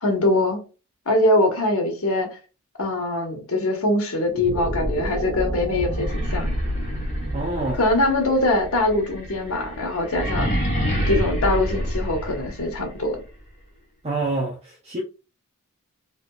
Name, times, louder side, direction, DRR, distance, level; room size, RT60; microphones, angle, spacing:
voice 1, 0.0-0.6 1.1-2.3 2.8-6.5 7.8-10.5 11.1-13.2, left 1 dB, 70° left, 1.2 m, -22 dB
sound 1, 4.2-10.6, right 1 dB, 90° right, 1.1 m, -30 dB
sound 2, 5.9-12.8, equal, 30° left, 1.5 m, -27 dB
voice 2, 7.3-7.8 14.0-15.0, right 2 dB, 30° right, 0.6 m, -27 dB
3.4 x 2.8 x 2.4 m
head